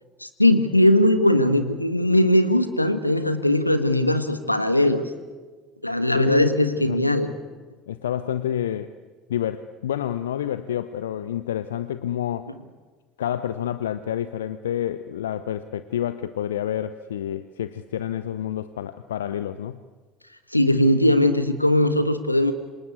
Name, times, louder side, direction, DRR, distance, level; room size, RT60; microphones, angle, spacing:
voice 1, 0.2-5.1 5.8-7.3 20.5-22.5, left 1 dB, 90° left, 11 dB, 1.4 m, -19 dB
voice 2, 6.1-7.0 7.9-8.9 9.3-12.5 13.2-19.8, left 10 dB, 70° left, 13 dB, 0.7 m, -28 dB
27.0 x 26.5 x 8.3 m, 1.4 s
figure-of-eight pair, 65°, 0 cm